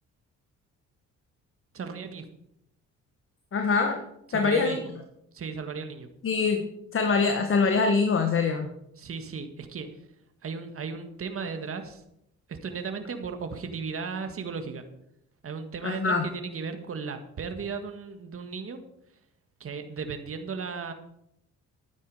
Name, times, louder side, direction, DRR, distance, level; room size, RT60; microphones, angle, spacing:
voice 1, 1.7-2.3 4.3-4.8 5.3-6.1 9.0-9.9 10.4-12.0 12.5-14.9 15.4-18.8 19.6-20.9, right 5 dB, 45° right, 7 dB, 1.8 m, -35 dB
voice 2, 3.5-4.0 4.3-4.8 6.2-6.6 6.9-8.7 15.8-16.3, left 4 dB, 45° left, 5 dB, 1.5 m, -24 dB
12.5 x 9.5 x 4.9 m, 0.78 s
cardioid pair, 90°, 30 cm